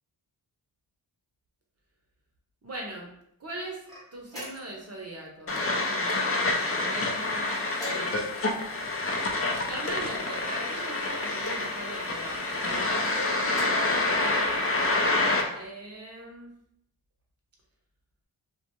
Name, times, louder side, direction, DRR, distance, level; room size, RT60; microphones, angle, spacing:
voice 1, 2.6-3.1 3.4-3.8 4.1-7.6 7.8-8.7 9.6-16.5, right 1 dB, 35° right, 0 dB, 0.7 m, -41 dB
sound 1, 3.8-4.9 6.6-7.2 7.7-8.4 9.3-10.3 11.2-11.7 12.7-13.0 13.5-13.9, left 1 dB, 10° left, 0.8 m, -43 dB
sound 2, 5.5-15.4, left 2 dB, 30° left, 0.4 m, -27 dB
2.3 x 2.2 x 2.9 m, 0.75 s
wide cardioid pair, 65°, 45 cm